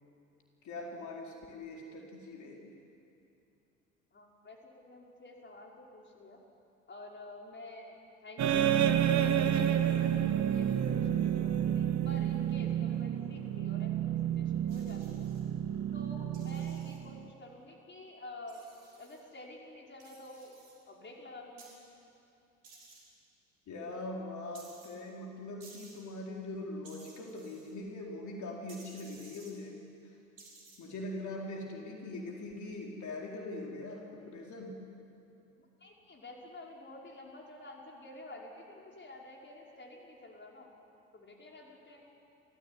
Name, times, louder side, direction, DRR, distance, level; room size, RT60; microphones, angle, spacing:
voice 1, 0.6-2.8 23.7-29.8 30.8-34.8, left 2 dB, 45° left, -1 dB, 4.6 m, -42 dB
voice 2, 4.1-6.4 6.9-7.9 8.2-15.3 15.9-20.5 20.9-21.7 35.8-40.7 41.1-42.1, left 2 dB, 25° left, -1 dB, 5.7 m, -50 dB
sound 1, 8.4-17.3, right 10 dB, 45° right, 1.8 m, -30 dB
sound 2, 14.7-15.4 16.3-17.0 18.5-19.2 20.0-20.8 21.6-21.8 22.6-23.0 24.5-24.9 25.6-26.0 26.8-27.7 28.7-29.5 30.4-30.8, right 3 dB, 75° right, 6.0 m, -56 dB
29.5 x 15.5 x 9.9 m, 2.7 s
figure-of-eight pair, 65°, 41 cm